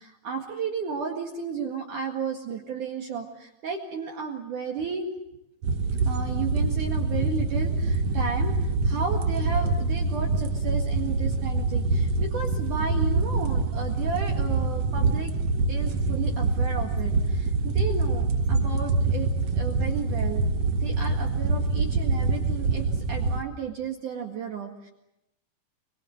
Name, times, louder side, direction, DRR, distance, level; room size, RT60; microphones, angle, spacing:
voice 1, 0.0-5.2 6.0-15.3 15.7-19.3 19.5-20.5 20.8-24.9, right 6 dB, 55° right, 1 dB, 3.0 m, -33 dB
sound 1, 5.6-23.4, right 3 dB, 70° right, 1.5 m, -25 dB
27.0 x 23.5 x 7.9 m, 0.86 s
omnidirectional pair, 5.0 m